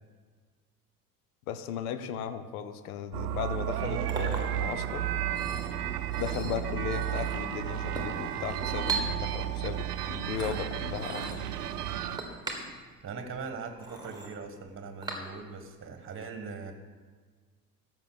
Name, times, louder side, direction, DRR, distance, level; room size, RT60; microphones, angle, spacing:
voice 1, 1.5-5.1 6.2-11.4, left 8 dB, 65° left, 10 dB, 0.9 m, -36 dB
sound 1, 3.1-12.2, right 11 dB, 75° right, 0.7 m, -33 dB
Chink clink, 3.6-15.7, right 3 dB, 10° right, 1.6 m, -41 dB
voice 2, 13.0-16.7, right 4 dB, 25° right, 7 dB, 1.4 m, -40 dB
14.0 x 5.6 x 6.3 m, 1.5 s
figure-of-eight pair, 65°, 47 cm